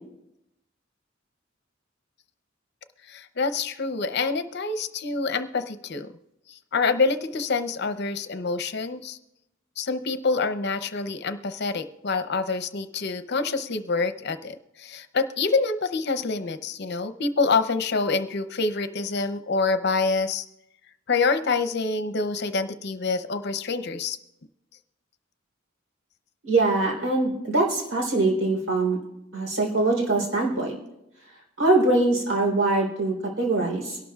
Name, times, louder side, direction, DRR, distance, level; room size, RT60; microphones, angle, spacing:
voice 1, 3.1-6.1 6.5-9.2 9.8-20.5 21.1-24.2, left 4 dB, 60° left, 9 dB, 0.7 m, -26 dB
voice 2, 26.4-29.0 29.3-30.8 31.6-34.0, right 2 dB, 80° right, -1 dB, 3.7 m, -23 dB
23.5 x 12.0 x 2.4 m, 0.90 s
head